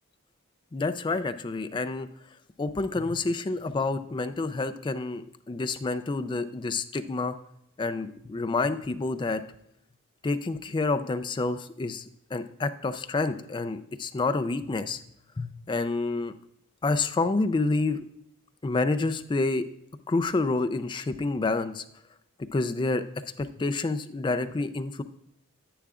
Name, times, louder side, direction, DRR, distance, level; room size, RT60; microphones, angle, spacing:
voice 1, 0.7-2.1 2.6-7.3 7.8-9.4 10.2-12.0 12.3-15.0 15.4-16.3 16.8-18.0 18.6-19.6 20.1-21.8 22.5-23.0 23.4-25.0, left 3 dB, 20° left, 10 dB, 0.3 m, -28 dB
10.0 x 8.5 x 2.4 m, 0.78 s
head